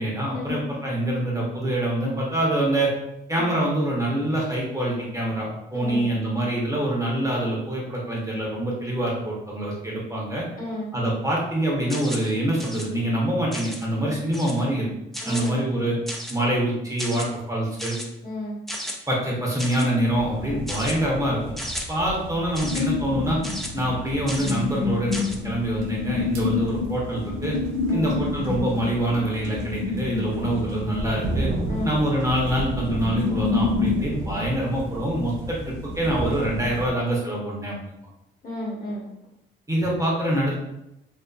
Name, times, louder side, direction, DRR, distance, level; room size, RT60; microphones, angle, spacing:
voice 1, 0.0-2.9 3.3-10.4 10.9-14.9 15.2-16.0 16.3-18.0 19.1-21.4 21.9-23.4 23.7-25.1 25.4-27.6 27.9-31.5 31.8-37.8 39.7-40.6, right 1 dB, 15° right, -4 dB, 0.8 m, -25 dB
voice 2, 5.7-6.1 10.6-10.9 13.9-14.1 15.2-15.9 18.2-18.6 20.4-20.6 27.9-28.1 31.7-32.0 38.4-39.1, left 2 dB, 45° left, -4 dB, 1.1 m, -33 dB
sound 1, 11.9-12.3 12.6-12.9 13.5-13.8 14.3-14.6 15.1-15.5 16.1-16.4 17.0-17.3 17.8-18.1 18.7-19.0 19.6-19.9 20.7-21.0 21.6-21.8 22.5-22.8 23.4-23.7 24.3-24.6 25.1-25.4, equal, ahead, 0.4 m, -34 dB
sound 2, 20.1-36.9, right 1 dB, 80° right, 0.5 m, -34 dB
sound 3, 22.6-34.1, left 5 dB, 90° left, 0.5 m, -29 dB
2.5 x 2.4 x 2.3 m, 0.85 s
cardioid pair, 90°, 20 cm